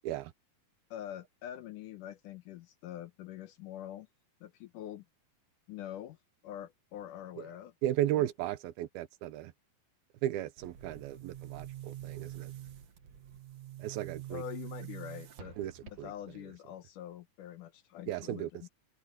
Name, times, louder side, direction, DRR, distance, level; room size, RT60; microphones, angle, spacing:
voice 1, 0.9-4.1 4.4-5.1 5.7-6.2 6.4-7.7 8.1-8.3 14.3-15.6 15.8-18.7, left 11 dB, 75° left, 2.2 m, -45 dB
voice 2, 7.8-9.5 10.2-12.5 13.8-14.4 15.6-16.1 18.1-18.7, right 13 dB, 80° right, 2.8 m, -35 dB
Boom, 10.6-16.4, right 12 dB, 50° right, 2.5 m, -46 dB
omnidirectional pair, 4.3 m